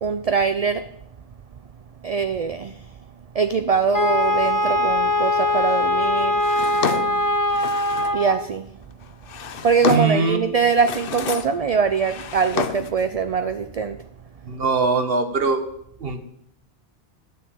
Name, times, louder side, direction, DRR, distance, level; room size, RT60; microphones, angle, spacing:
voice 1, 0.0-0.8 2.0-2.8 3.3-6.4 8.1-8.7 9.6-14.0, right 5 dB, 45° right, 9 dB, 0.6 m, -22 dB
Wind instrument woodwind instrument, 3.9-8.5, left 1 dB, 20° left, 0.6 m, -21 dB
Drawer open or close, 6.4-8.2 9.0-10.3 10.7-11.6 11.9-13.0, left 8 dB, 65° left, 0.9 m, -29 dB
voice 2, 9.9-10.4 14.5-15.6 16.0-16.2, right 4 dB, 65° right, 7 dB, 1.5 m, -21 dB
11.0 x 6.7 x 8.5 m, 0.73 s
omnidirectional pair, 1.1 m